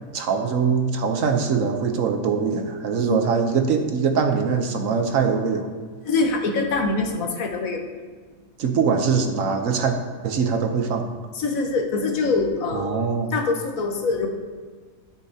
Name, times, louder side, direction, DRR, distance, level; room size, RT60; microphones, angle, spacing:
voice 1, 0.1-5.7 8.6-10.0 10.2-11.1 12.7-13.3, right 5 dB, 70° right, 6 dB, 1.2 m, -22 dB
voice 2, 6.0-7.8 11.4-13.1 13.3-14.3, left 3 dB, 85° left, 4 dB, 1.4 m, -24 dB
13.0 x 7.2 x 2.8 m, 1.5 s
omnidirectional pair, 1.4 m